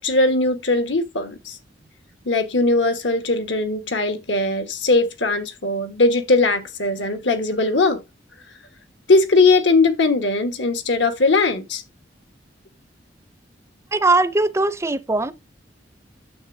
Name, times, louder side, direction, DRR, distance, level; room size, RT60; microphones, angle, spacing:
voice 1, 0.0-1.6 2.2-8.0 9.1-11.8, left 3 dB, 80° left, 1.3 m, -19 dB
voice 2, 13.9-15.3, right 2 dB, 15° right, 0.5 m, -20 dB
9.4 x 7.1 x 2.7 m
head